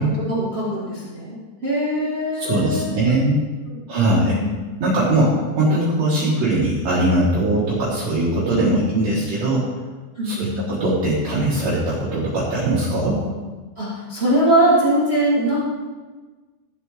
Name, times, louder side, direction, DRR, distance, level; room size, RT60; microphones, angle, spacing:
voice 1, 0.2-2.9 3.7-4.5 8.5-8.8 10.1-10.6 13.8-15.6, right 1 dB, 40° right, -7 dB, 0.9 m, -21 dB
voice 2, 2.4-3.4 3.9-4.4 4.8-9.6 10.2-13.2, right 1 dB, 55° right, -7 dB, 2.1 m, -20 dB
14.0 x 8.2 x 3.8 m, 1.3 s
omnidirectional pair, 5.2 m